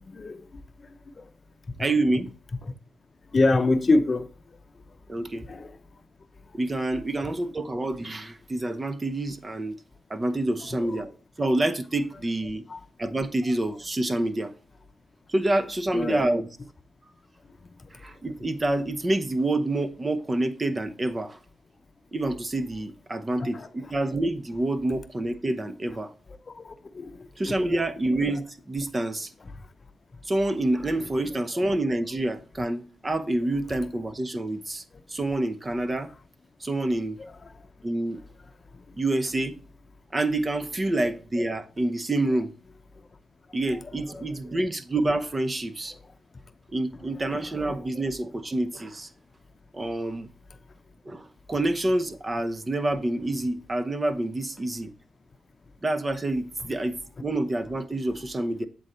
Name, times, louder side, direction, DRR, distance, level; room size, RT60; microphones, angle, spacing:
voice 1, 0.1-0.4 3.3-4.3 5.5-5.7 10.8-11.0 12.7-12.8 15.9-16.2 23.4-23.7 26.6-27.7 31.2-31.3 44.1-44.3, left 2 dB, 45° left, 0.7 m, -25 dB
voice 2, 1.8-2.3 5.1-5.5 6.6-9.8 10.1-11.1 11.4-12.6 13.0-14.5 15.3-16.5 17.9-21.4 22.1-26.1 27.4-29.3 30.2-34.8 35.1-36.1 36.6-37.2 37.8-38.2 39.0-39.6 40.1-42.5 43.5-45.9 46.7-49.1 49.7-50.3 51.0-54.9 55.8-58.7, right 2 dB, 30° right, 0.8 m, -27 dB
8.0 x 3.9 x 4.3 m
cardioid pair, 60°, 0 cm